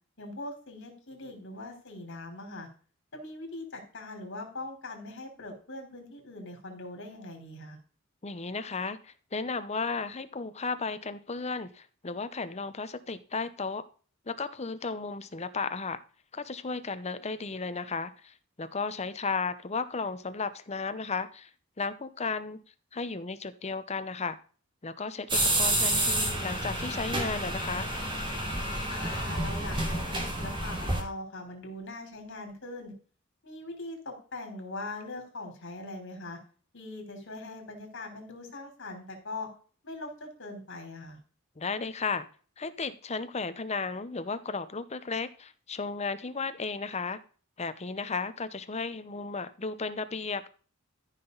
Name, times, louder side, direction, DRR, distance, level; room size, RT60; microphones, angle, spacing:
voice 1, 0.2-2.7 3.1-7.8 28.9-32.9 33.4-36.4 36.7-39.5 39.8-41.2, left 2 dB, 60° left, 3.7 m, -41 dB
voice 2, 8.2-13.8 14.3-16.0 16.3-21.5 21.8-22.6 22.9-24.4 24.8-27.9 41.6-42.3 42.6-47.2 47.6-50.5, left 4 dB, 30° left, 0.8 m, -34 dB
sound 1, 25.3-31.0, right 1 dB, 25° right, 2.6 m, -29 dB
14.0 x 6.0 x 3.9 m
head